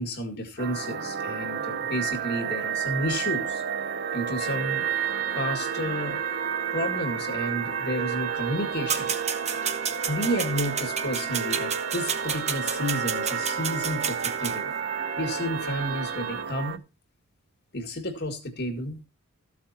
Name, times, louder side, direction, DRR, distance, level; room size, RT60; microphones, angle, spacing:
voice 1, 0.0-3.6 4.1-4.8 5.4-6.2 6.7-9.1 10.1-14.7 15.2-16.8 17.7-19.0, equal, 50° left, 1.9 m, -31 dB
Magical Atmosphere (Ambient), 0.6-16.8, right 7 dB, 45° right, 0.7 m, -31 dB
sound 1, 4.4-16.4, right 7 dB, 85° right, 1.3 m, -38 dB
sound 2, 8.9-14.5, right 7 dB, 30° right, 1.0 m, -31 dB
14.0 x 8.6 x 2.8 m
head